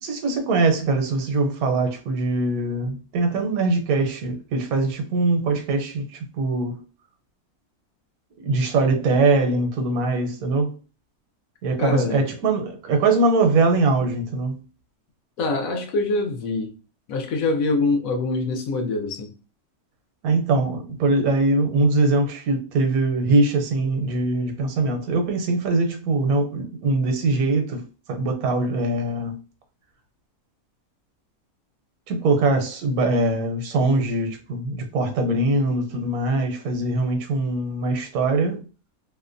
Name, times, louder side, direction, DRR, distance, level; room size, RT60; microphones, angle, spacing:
voice 1, 0.0-6.8 8.4-10.7 11.6-14.6 20.2-29.4 32.1-38.7, right 2 dB, 75° right, 1.1 m, -22 dB
voice 2, 11.8-12.3 15.4-16.7 17.1-19.3, left 3 dB, 70° left, 1.0 m, -24 dB
2.7 x 2.1 x 2.5 m
omnidirectional pair, 1.6 m